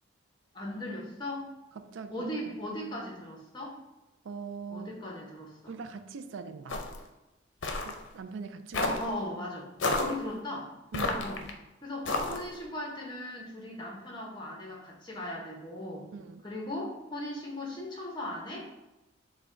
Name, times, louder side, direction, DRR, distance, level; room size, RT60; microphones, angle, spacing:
voice 1, 0.5-1.5 2.1-3.7 4.7-5.7 8.8-10.7 11.0-11.4 11.8-16.0 16.4-18.7, left 1 dB, 20° left, -1 dB, 0.8 m, -38 dB
voice 2, 1.8-2.5 4.2-4.9 5.7-6.8 7.6-8.9 10.9-11.2 16.1-16.5, right 5 dB, 75° right, 10 dB, 0.4 m, -42 dB
sound 1, 6.7-7.0 7.6-8.0 8.7-9.1 9.8-10.2 10.9-11.5 12.1-12.5, left 3 dB, 70° left, 0.6 m, -31 dB
5.8 x 2.2 x 3.7 m, 0.99 s
head